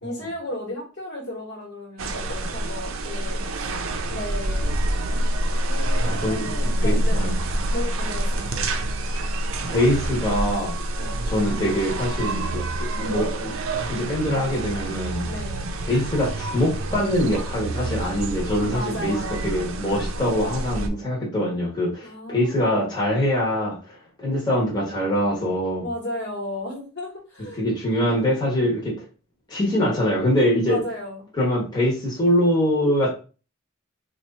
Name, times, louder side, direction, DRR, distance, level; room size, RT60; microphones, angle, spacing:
voice 1, 0.0-3.4 4.1-4.8 5.6-7.3 7.7-8.7 11.0-11.2 15.2-15.7 18.7-19.5 22.0-22.9 25.8-27.6 30.6-31.2, left 1 dB, 55° left, -1 dB, 1.5 m, -34 dB
sound 1, 2.0-20.9, right 1 dB, 65° right, 0.5 m, -27 dB
voice 2, 6.1-7.3 9.7-10.8 11.2-13.5 13.9-15.3 15.9-19.2 19.4-25.9 27.6-28.9 29.5-30.8 31.4-33.1, equal, 20° left, -5 dB, 1.1 m, -23 dB
3.0 x 2.5 x 4.0 m, 0.35 s
head